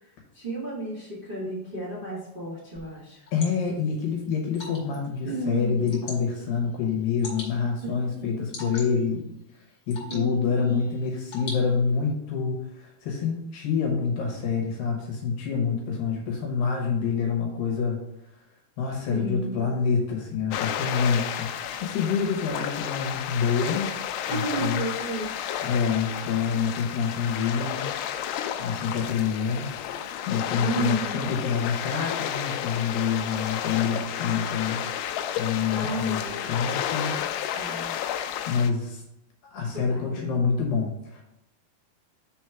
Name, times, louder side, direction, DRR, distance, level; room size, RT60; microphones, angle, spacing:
voice 1, 0.0-3.3 5.2-5.9 8.0-8.7 10.1-10.7 19.1-19.6 24.3-25.3 30.6-31.4 35.7-36.5 37.2-38.0 39.7-40.4, right 2 dB, 20° right, -8 dB, 1.7 m, -33 dB
Water / Drip, 2.8-12.1, left 2 dB, 45° left, 2.4 m, -45 dB
voice 2, 3.3-9.3 9.9-18.0 18.8-21.5 21.8-23.9 24.3-24.8 25.6-27.9 28.6-29.7 30.3-34.8 35.4-37.1 38.5-39.0 39.4-41.2, left 6 dB, 70° left, 0 dB, 2.6 m, -27 dB
sound 1, 20.5-38.7, left 10 dB, 85° left, 2.6 m, -32 dB
5.3 x 4.6 x 5.8 m, 0.85 s
omnidirectional pair, 4.6 m